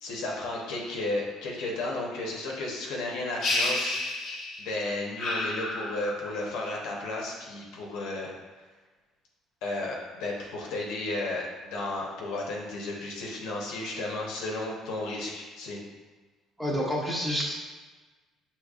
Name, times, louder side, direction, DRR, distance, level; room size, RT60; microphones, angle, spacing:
voice 1, 0.0-4.0 4.6-8.3 9.6-15.8, left 2 dB, 85° left, -2 dB, 1.0 m, -33 dB
sound 1, 3.4-4.7 5.2-6.4, left 2 dB, 60° left, 1.0 m, -30 dB
voice 2, 16.6-17.5, equal, 5° right, -4 dB, 1.0 m, -28 dB
6.3 x 3.0 x 2.4 m, 1.3 s
cardioid pair, 105°, 0 cm